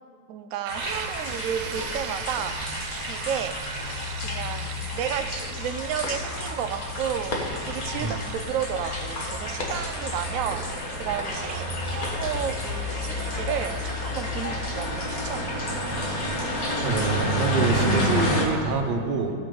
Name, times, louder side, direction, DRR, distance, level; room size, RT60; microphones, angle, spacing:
voice 1, 0.3-3.6 4.2-15.6, right 9 dB, 70° right, 9 dB, 0.8 m, -32 dB
sound 1, 0.7-18.5, left 1 dB, 50° left, 1.9 m, -30 dB
sound 2, 0.7-16.2, right 9 dB, 85° right, 1.3 m, -42 dB
voice 2, 16.8-19.3, right 3 dB, 35° right, 3 dB, 0.9 m, -26 dB
15.0 x 8.8 x 3.9 m, 2.1 s
omnidirectional pair, 2.0 m